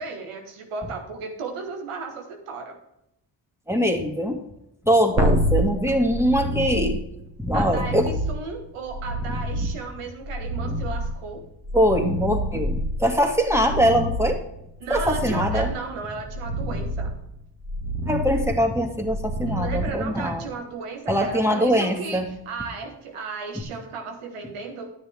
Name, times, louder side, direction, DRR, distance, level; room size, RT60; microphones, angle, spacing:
voice 1, 0.0-2.8 7.5-11.4 14.8-17.1 19.5-24.9, right 4 dB, 85° right, 4 dB, 1.7 m, -35 dB
voice 2, 3.7-4.4 4.8-7.0 7.4-8.1 9.6-9.7 11.7-14.4 14.9-15.7 18.1-20.5 21.1-22.3, equal, 5° right, 4 dB, 2.4 m, -22 dB
sound 1, 5.2-20.5 23.6-23.7, equal, 30° right, 1.9 m, -28 dB
10.0 x 9.6 x 3.6 m, 0.81 s
supercardioid pair, 45°, 50 cm